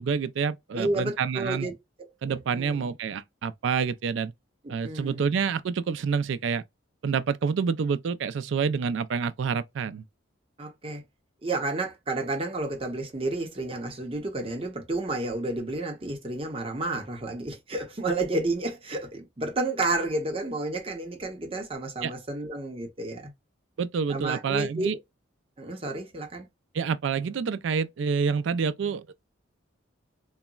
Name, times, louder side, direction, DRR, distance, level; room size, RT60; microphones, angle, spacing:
voice 1, 0.0-1.7 2.2-4.3 4.7-6.6 7.0-10.0 22.0-22.1 23.8-24.9 26.7-29.1, right 6 dB, 65° right, 0.3 m, -28 dB
voice 2, 0.7-2.9 4.6-5.2 10.6-11.0 11.4-23.3 24.1-25.0 25.6-26.5, right 2 dB, 30° right, 0.7 m, -31 dB
3.8 x 2.1 x 2.2 m
head